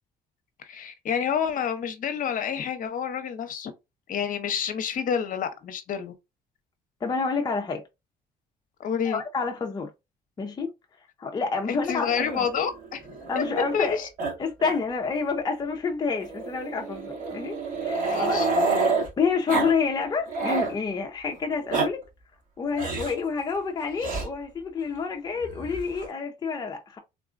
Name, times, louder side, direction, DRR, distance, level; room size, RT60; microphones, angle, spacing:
voice 1, 0.6-3.7 4.1-6.1 8.8-9.2 11.7-13.4 13.7-14.1 18.0-18.5, left 7 dB, 55° left, 0.8 m, -29 dB
voice 2, 7.0-7.8 9.0-9.9 10.4-10.7 11.2-12.5 13.3-14.0 14.4-17.6 17.8-18.4 19.2-22.1 22.6-27.0, left 5 dB, 25° left, 0.5 m, -28 dB
Growling, 12.0-13.9 14.2-14.3 14.6-14.8 15.1-15.2 16.2-19.1 19.5-19.7 20.0-20.7 21.5-21.9 22.7-23.2 24.0-24.3 25.4-26.1, right 3 dB, 50° right, 1.8 m, -28 dB
3.6 x 2.2 x 2.4 m
cardioid pair, 110°, 17 cm